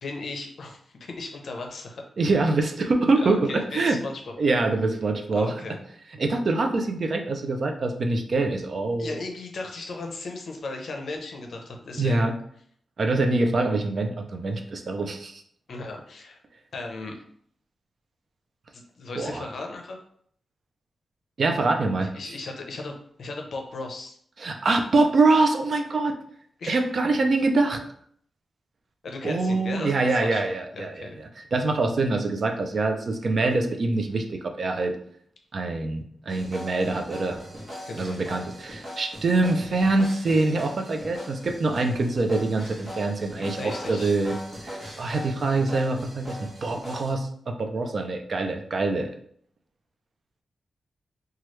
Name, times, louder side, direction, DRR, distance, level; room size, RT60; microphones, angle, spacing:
voice 1, 0.0-2.0 3.2-4.3 5.3-5.8 9.0-12.2 15.7-16.4 16.7-17.2 18.7-20.0 22.0-24.2 26.6-26.8 29.0-31.2 37.8-38.2 43.4-44.1, left 3 dB, 65° left, 3 dB, 0.5 m, -36 dB
voice 2, 2.2-4.0 4.4-5.5 6.2-9.2 12.0-12.4 13.0-15.4 19.1-19.5 21.4-22.1 24.4-26.2 26.7-27.8 29.2-34.9 35.5-37.4 38.0-44.3 44.6-49.1, right 3 dB, 50° right, 4 dB, 0.4 m, -24 dB
sound 1, 36.3-47.1, equal, 30° right, 0.9 m, -40 dB
3.0 x 2.3 x 3.1 m, 0.63 s
wide cardioid pair, 145°, 0 cm